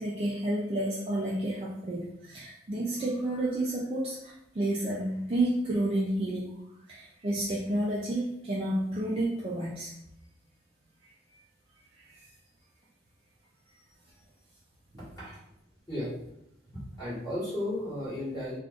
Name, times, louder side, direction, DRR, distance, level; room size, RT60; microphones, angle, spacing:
voice 1, 0.0-6.6 6.9-9.9, right 1 dB, 30° right, -5 dB, 0.4 m, -30 dB
voice 2, 16.7-18.6, left 1 dB, 20° left, -10 dB, 1.4 m, -34 dB
2.5 x 2.5 x 3.6 m, 0.79 s
head